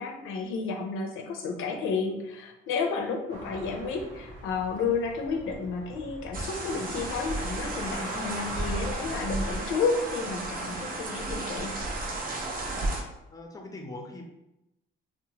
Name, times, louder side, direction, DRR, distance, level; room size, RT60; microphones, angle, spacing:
voice 1, 0.0-11.8, left 4 dB, 90° left, 2 dB, 0.5 m, -31 dB
sound 1, 3.3-9.3, right 1 dB, 85° right, 0.7 m, -43 dB
sound 2, 6.3-13.0, right 2 dB, 45° right, 0.5 m, -33 dB
voice 2, 13.3-14.2, left 2 dB, 15° left, 2 dB, 0.5 m, -41 dB
2.8 x 2.1 x 2.8 m, 0.91 s
cardioid pair, 90°, 20 cm